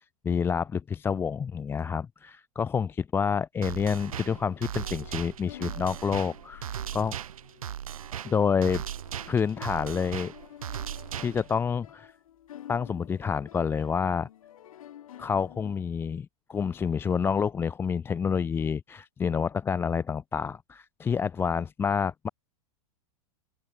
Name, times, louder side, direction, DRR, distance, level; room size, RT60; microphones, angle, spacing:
voice 1, 0.2-7.2 8.2-8.8 9.3-10.3 11.2-12.1 12.7-14.3 15.2-22.3, left 6 dB, 15° left, 0.3 m, -28 dB
sound 1, 3.6-16.1, left 11 dB, 85° left, 3.7 m, -50 dB
sound 2, 3.6-11.6, right 10 dB, 90° right, 6.0 m, -38 dB
open air
hypercardioid pair, 120°, 17 cm